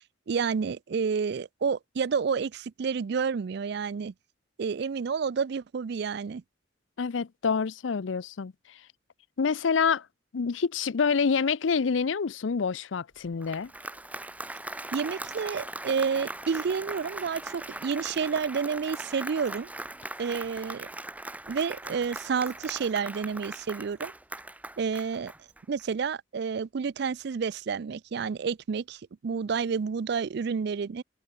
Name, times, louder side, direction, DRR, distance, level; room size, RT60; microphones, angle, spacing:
voice 1, 0.3-4.1 4.6-6.4 14.9-19.7 20.2-20.9 21.5-24.1 24.8-25.3 25.7-31.0, right 6 dB, 60° right, 0.4 m, -30 dB
voice 2, 7.0-8.5 9.4-10.0 10.3-13.7, left 5 dB, 85° left, 0.5 m, -27 dB
Applause, 13.2-25.8, right 1 dB, 10° right, 1.5 m, -40 dB
open air
head